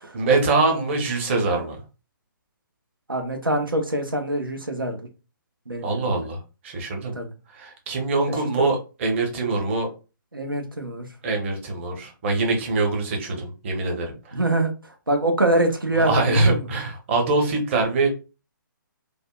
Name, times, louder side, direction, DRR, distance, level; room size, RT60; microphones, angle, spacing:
voice 1, 0.1-1.8 5.8-7.1 7.5-9.9 11.2-14.4 16.0-18.1, right 3 dB, 35° right, 2 dB, 0.9 m, -23 dB
voice 2, 3.1-5.0 5.7-6.2 7.1-7.3 8.6-8.7 10.3-11.1 14.3-16.7, right 1 dB, 90° right, 4 dB, 0.7 m, -24 dB
3.4 x 2.1 x 2.3 m, 0.31 s
figure-of-eight pair, 135°, 11 cm